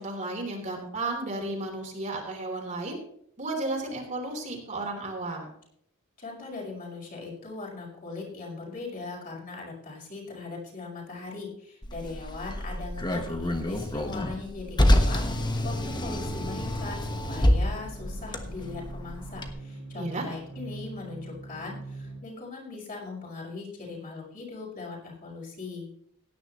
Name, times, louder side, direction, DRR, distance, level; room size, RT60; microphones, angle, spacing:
voice 1, 0.0-3.0 3.4-5.5 19.9-20.2, right 2 dB, 35° right, 0 dB, 3.3 m, -33 dB
voice 2, 6.2-25.9, left 3 dB, 40° left, -3 dB, 5.4 m, -40 dB
Car, 11.8-19.5, left 1 dB, 20° left, 1.2 m, -27 dB
sound 1, 14.9-22.2, right 2 dB, 85° right, 2.7 m, -43 dB
17.0 x 10.0 x 3.1 m, 0.69 s
head